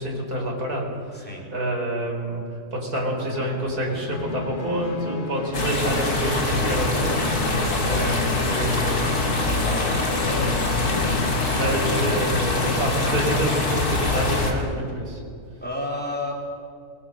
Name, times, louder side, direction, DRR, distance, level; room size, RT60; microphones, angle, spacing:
voice 1, 0.0-2.4 2.7-9.1 10.3-11.1 11.5-15.2, right 1 dB, 80° right, 0 dB, 5.2 m, -28 dB
voice 2, 1.1-1.5 7.6-8.2 9.6-10.0 15.6-16.3, left 1 dB, 5° left, -2 dB, 4.4 m, -32 dB
sound 1, 3.2-12.2, left 5 dB, 50° left, 1.5 m, -33 dB
sound 2, 5.5-14.5, left 2 dB, 85° left, 3.5 m, -24 dB
24.5 x 22.5 x 6.7 m, 2.4 s
omnidirectional pair, 1.6 m